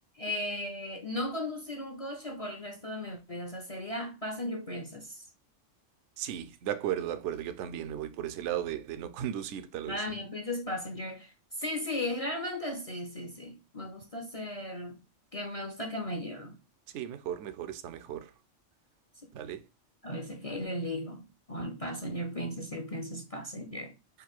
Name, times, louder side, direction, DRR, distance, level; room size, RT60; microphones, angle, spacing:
voice 1, 0.2-5.2 9.9-15.0 15.3-16.6 20.0-23.9, left 1 dB, 35° left, 0.6 m, -36 dB
voice 2, 6.2-10.2 16.9-18.3 19.3-19.6, right 10 dB, 70° right, 0.9 m, -35 dB
3.8 x 2.6 x 4.4 m
omnidirectional pair, 1.3 m